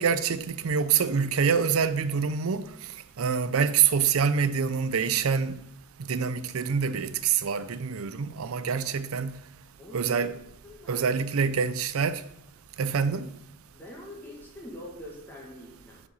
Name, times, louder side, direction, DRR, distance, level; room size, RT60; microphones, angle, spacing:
voice 1, 0.0-2.7 3.2-5.6 6.1-9.3 9.9-10.4 10.9-12.2 12.8-13.3, right 6 dB, 85° right, 0.5 m, -26 dB
voice 2, 9.8-10.3 10.6-11.1 13.7-16.0, left 1 dB, 10° left, 1.9 m, -44 dB
6.7 x 5.8 x 5.5 m
head